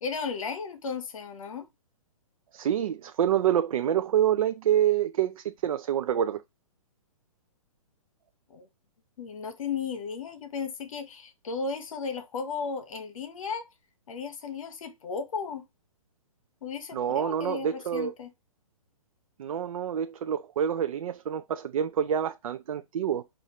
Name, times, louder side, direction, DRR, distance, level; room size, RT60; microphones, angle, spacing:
voice 1, 0.0-1.6 8.5-8.7 9.2-13.7 14.1-15.6 16.6-18.3, left 5 dB, 65° left, 1.1 m, -35 dB
voice 2, 2.5-6.4 16.9-18.1 19.4-23.2, right 10 dB, 70° right, 0.4 m, -27 dB
5.6 x 2.6 x 2.9 m
hypercardioid pair, 150°, 19 cm